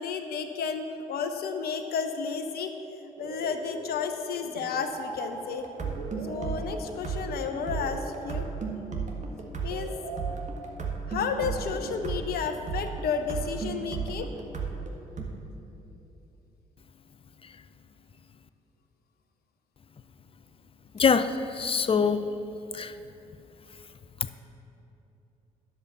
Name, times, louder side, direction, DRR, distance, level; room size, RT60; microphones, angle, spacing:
voice 1, 0.0-2.7 3.2-5.7 6.2-8.5 9.6-9.9 10.3-10.4 11.1-14.3, left 6 dB, 55° left, 7 dB, 0.9 m, -32 dB
sound 1, 3.2-9.0 9.7-11.1 11.8-13.3, right 3 dB, 80° right, 1.0 m, -41 dB
sound 2, 5.6-15.2, right 5 dB, 40° right, 1.7 m, -34 dB
voice 2, 20.9-22.3 22.7-23.0, left 5 dB, 30° left, 12 dB, 0.6 m, -24 dB
11.0 x 6.8 x 7.1 m, 2.9 s
figure-of-eight pair, 45°, 19 cm